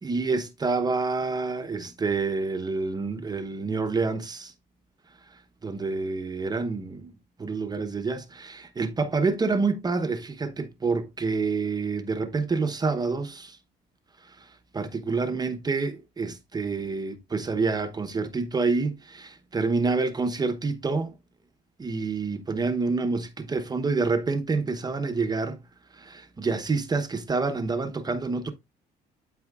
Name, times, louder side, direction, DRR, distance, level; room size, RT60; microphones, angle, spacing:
voice 1, 0.0-4.5 5.2-7.1 7.4-13.6 14.2-21.2 21.8-25.6 25.9-28.5, right 4 dB, 25° right, 0.9 m, -28 dB
12.0 x 4.3 x 2.4 m
cardioid pair, 110°, 17 cm